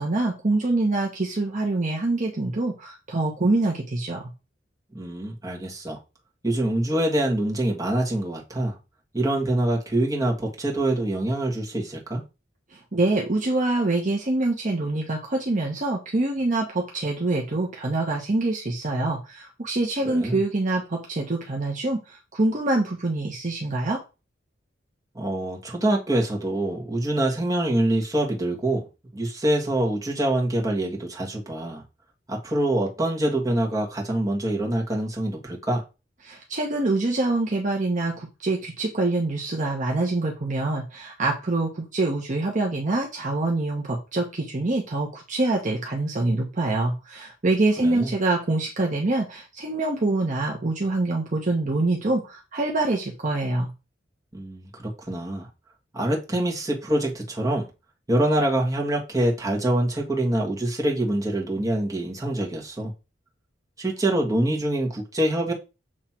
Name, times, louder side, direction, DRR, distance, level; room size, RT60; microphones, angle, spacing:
voice 1, 0.0-4.3 12.7-24.0 36.2-53.7, right 2 dB, 45° right, 0 dB, 1.0 m, -25 dB
voice 2, 4.9-6.0 6.4-8.7 9.1-12.2 20.0-20.4 25.2-28.8 29.1-31.8 32.3-35.8 47.8-48.1 54.3-55.5 55.9-57.7 58.1-62.9 63.8-65.5, right 1 dB, 20° right, -2 dB, 1.7 m, -25 dB
7.4 x 3.2 x 4.4 m, 0.29 s
head